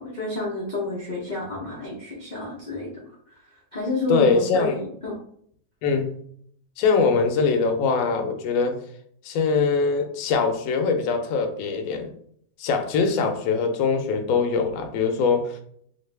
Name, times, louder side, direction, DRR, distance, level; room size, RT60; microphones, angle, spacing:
voice 1, 0.0-2.9 3.3-5.1, left 2 dB, 85° left, -5 dB, 0.4 m, -30 dB
voice 2, 4.1-4.8 5.8-6.1 6.8-8.8 9.2-12.1 12.6-15.6, left 4 dB, 70° left, 5 dB, 0.9 m, -22 dB
2.9 x 2.5 x 3.2 m, 0.64 s
omnidirectional pair, 1.9 m